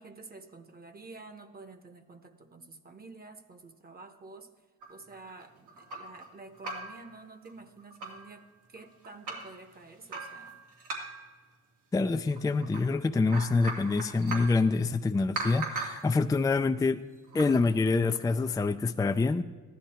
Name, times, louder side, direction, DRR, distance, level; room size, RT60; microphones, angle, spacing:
voice 1, 0.0-4.5 4.9-8.4 8.7-10.6, right 3 dB, 30° right, 9 dB, 1.1 m, -49 dB
sound 1, 4.8-6.2 6.5-7.1 7.4-7.5 7.8-8.3 8.8-9.5 10.1-11.3 12.3-12.8 13.1-14.6 15.3-16.1 17.2-17.6, right 3 dB, 85° right, 2.6 m, -39 dB
voice 2, 11.9-17.0 17.3-19.4, left 3 dB, 10° left, 7 dB, 0.4 m, -26 dB
14.5 x 11.0 x 4.4 m, 1.5 s
cardioid pair, 90°, 30 cm